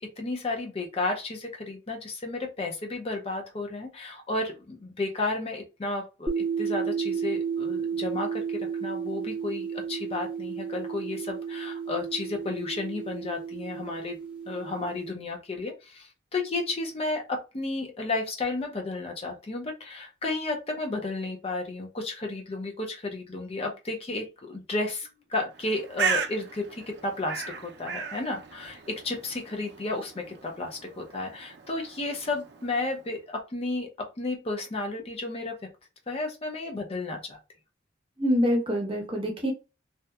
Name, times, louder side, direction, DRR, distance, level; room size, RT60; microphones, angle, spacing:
voice 1, 0.0-14.2 14.5-35.6 36.1-37.4, left 2 dB, 30° left, 2 dB, 0.5 m, -33 dB
sound 1, 6.3-15.1, right 6 dB, 5° right, 0.9 m, -32 dB
Bird, 25.5-33.1, right 6 dB, 60° right, 0.4 m, -36 dB
voice 2, 38.2-39.5, equal, 30° right, 1 dB, 0.7 m, -25 dB
2.7 x 2.1 x 2.2 m, 0.29 s
head